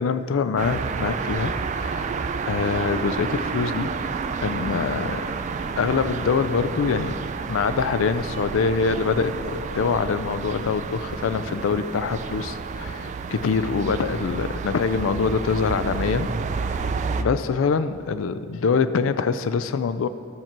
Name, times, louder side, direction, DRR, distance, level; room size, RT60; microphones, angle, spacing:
voice 1, 0.0-2.1 2.5-3.9 4.4-5.3 5.8-7.2 7.5-16.3 16.6-16.9 17.2-20.1, left 5 dB, 70° left, 12 dB, 0.4 m, -24 dB
sound 1, 0.6-17.2, right 5 dB, 35° right, 0.3 m, -30 dB
12.5 x 4.4 x 5.9 m, 2.5 s
head